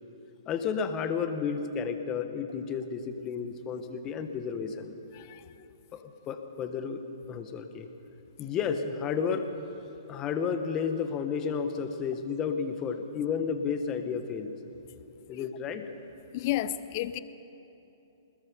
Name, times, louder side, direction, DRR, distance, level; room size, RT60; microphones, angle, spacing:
voice 1, 0.4-5.0 5.9-7.9 8.4-9.6 10.1-14.6 15.3-15.9, left 6 dB, 25° left, 7 dB, 1.5 m, -32 dB
voice 2, 16.3-17.2, left 13 dB, 40° left, 14 dB, 0.7 m, -32 dB
25.0 x 20.5 x 5.4 m, 3.0 s
hypercardioid pair, 135°, 2 cm